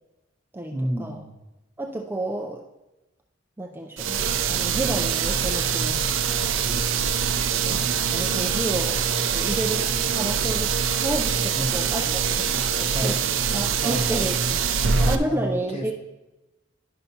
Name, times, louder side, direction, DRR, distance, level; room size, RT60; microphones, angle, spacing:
voice 1, 0.7-1.4 11.5-11.7 12.7-13.3 13.8-14.3 14.7-15.9, right 1 dB, 30° left, 0 dB, 1.2 m, -31 dB
voice 2, 1.8-2.6 3.6-4.2 4.5-6.0 7.6-9.1 9.3-12.5 12.8-13.1 13.5-14.6 15.1-15.9, right 1 dB, 10° right, 2 dB, 0.4 m, -31 dB
sound 1, 4.0-15.2, right 6 dB, 75° right, 0.4 m, -24 dB
11.0 x 5.6 x 2.8 m, 1.0 s
head